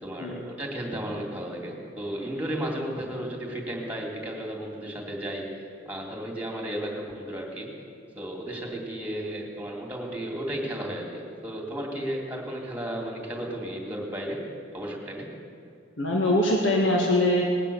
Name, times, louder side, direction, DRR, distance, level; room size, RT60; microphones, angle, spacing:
voice 1, 0.0-7.7 8.1-14.4 14.7-15.3, right 1 dB, 10° right, 0 dB, 2.6 m, -34 dB
voice 2, 16.0-17.4, left 1 dB, 85° left, -1 dB, 1.8 m, -22 dB
19.5 x 9.0 x 6.9 m, 2.5 s
head